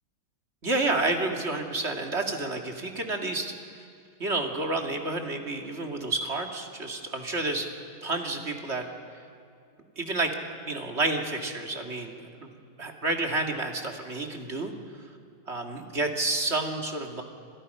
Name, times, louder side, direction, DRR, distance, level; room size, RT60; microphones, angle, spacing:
voice 1, 0.6-3.5 4.2-7.7 8.0-8.9 10.0-10.3 10.6-14.7 15.5-17.2, right 2 dB, 35° right, 3 dB, 2.4 m, -30 dB
29.5 x 27.0 x 5.5 m, 2.3 s
omnidirectional pair, 1.9 m